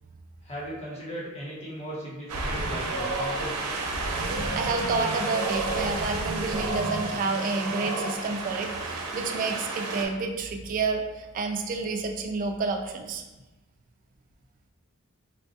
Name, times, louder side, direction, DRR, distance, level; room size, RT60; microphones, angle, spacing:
voice 1, 0.4-3.8, equal, 30° left, -7 dB, 1.0 m, -37 dB
Wind, 2.3-10.1, right 2 dB, 85° right, 0.5 m, -30 dB
voice 2, 4.5-13.2, right 4 dB, 35° right, 3 dB, 0.3 m, -29 dB
4.1 x 2.3 x 2.7 m, 1.1 s
head